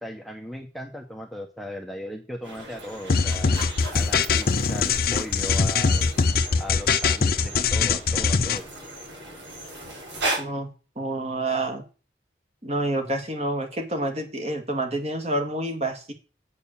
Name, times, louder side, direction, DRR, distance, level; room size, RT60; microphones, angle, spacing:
voice 1, 0.0-3.5 3.9-6.1 6.6-8.7, equal, ahead, 3 dB, 0.8 m, -37 dB
sound 1, 2.4-10.4, right 1 dB, 85° right, 6.5 m, -36 dB
sound 2, 3.1-8.6, left 5 dB, 50° left, 0.6 m, -22 dB
voice 2, 10.4-10.7 11.0-11.8 12.6-16.1, right 1 dB, 35° right, 4 dB, 1.9 m, -28 dB
8.4 x 6.5 x 7.1 m, 0.35 s
head